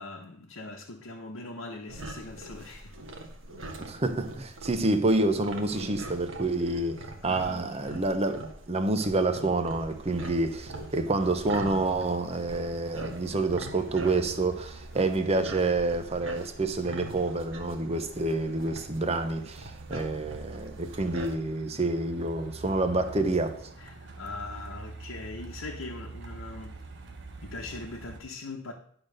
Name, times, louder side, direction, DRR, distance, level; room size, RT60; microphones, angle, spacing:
voice 1, 0.0-3.0 3.6-3.8 6.6-6.8 7.2-8.1 23.8-26.7 27.4-28.7, left 3 dB, 85° left, 1.0 m, -41 dB
sound 1, 1.9-21.3, right 2 dB, 75° right, 1.3 m, -43 dB
voice 2, 3.8-23.5, right 2 dB, 30° right, 0.8 m, -28 dB
Truck, 9.5-28.2, right 3 dB, 60° right, 0.9 m, -46 dB
10.5 x 4.0 x 6.6 m
head